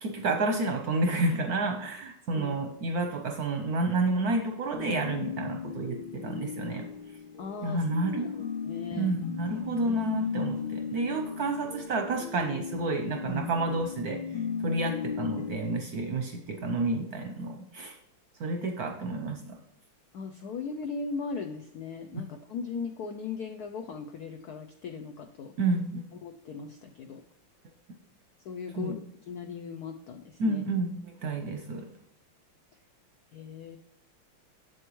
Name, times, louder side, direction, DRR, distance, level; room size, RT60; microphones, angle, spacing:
voice 1, 0.0-6.9 7.6-8.3 9.0-18.0 18.4-19.6 25.6-26.0 28.7-29.0 30.4-31.9, right 2 dB, 65° right, 4 dB, 1.0 m, -30 dB
sound 1, 4.7-15.5, left 6 dB, 55° left, 1.9 m, -36 dB
voice 2, 7.4-9.1 9.6-9.9 20.1-25.5 26.2-27.2 28.4-29.0 29.3-30.6 33.3-33.8, left 5 dB, 85° left, 7 dB, 0.8 m, -38 dB
7.8 x 7.7 x 3.1 m, 0.79 s
omnidirectional pair, 2.4 m